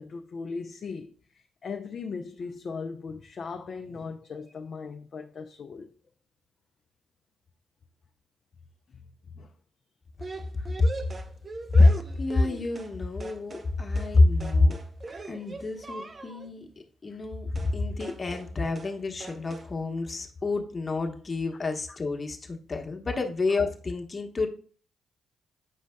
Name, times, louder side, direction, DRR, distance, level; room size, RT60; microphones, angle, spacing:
voice 1, 0.0-5.9 9.3-9.5 10.2-10.3 17.1-17.2, left 5 dB, 50° left, 0.5 m, -38 dB
sound 1, 10.2-13.0 13.2-13.7 14.0-14.2 14.4-16.5 17.6-17.8 18.0-18.5 18.8-19.0 19.2-19.7, right 3 dB, 40° right, 0.6 m, -41 dB
voice 2, 10.6-10.9 11.7-14.8 15.3-16.7 17.0-24.5, left 2 dB, 35° left, 1.1 m, -26 dB
8.4 x 5.1 x 2.2 m
hypercardioid pair, 45°, 0 cm